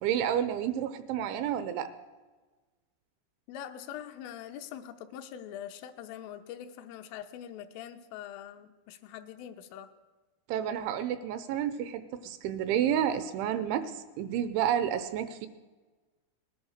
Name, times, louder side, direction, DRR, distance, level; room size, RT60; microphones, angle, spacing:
voice 1, 0.0-1.9 10.5-15.5, right 9 dB, 80° right, 12 dB, 2.9 m, -30 dB
voice 2, 3.5-9.9, left 10 dB, 80° left, 7 dB, 3.4 m, -43 dB
20.0 x 11.0 x 6.5 m, 1.3 s
omnidirectional pair, 5.8 m